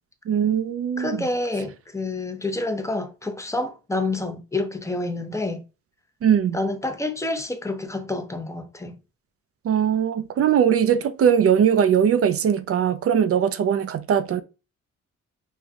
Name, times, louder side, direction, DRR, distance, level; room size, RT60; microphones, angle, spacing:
voice 1, 0.3-1.2 6.2-6.6 9.6-14.4, right 8 dB, 50° right, 0.5 m, -20 dB
voice 2, 1.0-5.6 6.5-9.0, left 2 dB, 10° left, 0.7 m, -28 dB
5.3 x 2.2 x 3.5 m
cardioid pair, 100°, 30 cm